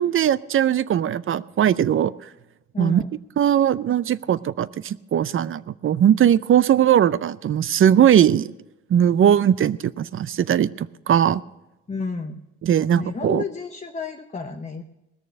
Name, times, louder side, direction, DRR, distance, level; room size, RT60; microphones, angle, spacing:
voice 1, 0.0-2.1 2.8-3.0 3.4-8.5 8.9-11.4 12.6-13.4, right 9 dB, 45° right, 17 dB, 0.5 m, -19 dB
voice 2, 2.7-3.1 11.9-12.4 12.9-14.8, left 4 dB, 25° left, 4 dB, 0.8 m, -31 dB
18.5 x 6.8 x 6.3 m, 0.97 s
cardioid pair, 90°, 30 cm